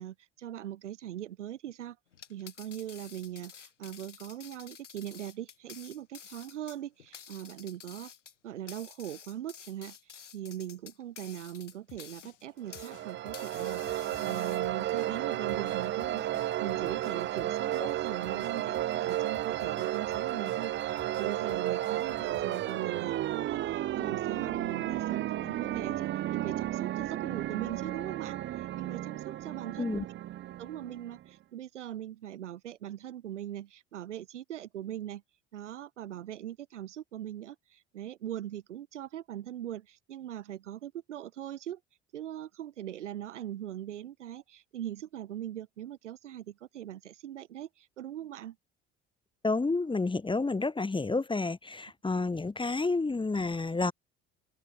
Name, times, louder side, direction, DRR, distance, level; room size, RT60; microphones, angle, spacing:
voice 1, 0.0-2.0 2.3-8.1 8.4-10.0 10.3-30.0 30.6-35.2 35.5-41.8 42.1-48.6, right 11 dB, 80° right, 2.1 m, -41 dB
sound 1, 2.1-13.0 13.3-14.9, left 8 dB, 85° left, 5.6 m, -50 dB
sound 2, 11.9-22.8, left 15 dB, 55° left, 5.2 m, -56 dB
sound 3, 12.7-31.3, right 13 dB, 35° right, 0.5 m, -33 dB
voice 2, 49.4-53.9, left 3 dB, 15° left, 1.1 m, -30 dB
open air
figure-of-eight pair, 60°, 35 cm